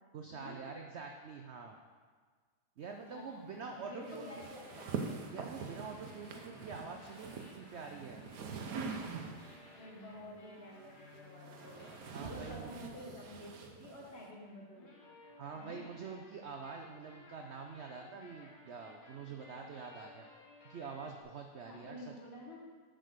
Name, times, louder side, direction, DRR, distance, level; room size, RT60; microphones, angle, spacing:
voice 1, 0.1-1.8 2.8-4.3 5.3-8.2 12.1-12.7 15.4-20.2 20.6-22.1, right 5 dB, 80° right, 3 dB, 0.6 m, -46 dB
voice 2, 3.0-5.0 9.7-11.8 12.2-14.9 15.5-15.8 21.6-22.6, left 1 dB, 35° left, -3 dB, 1.8 m, -50 dB
sound 1, 3.4-12.9 14.5-21.2, left 2 dB, 65° left, 1.9 m, -58 dB
sound 2, 4.1-9.7 10.7-14.3, right 5 dB, 65° right, 1.1 m, -44 dB
7.7 x 5.3 x 6.6 m, 1.5 s
omnidirectional pair, 1.9 m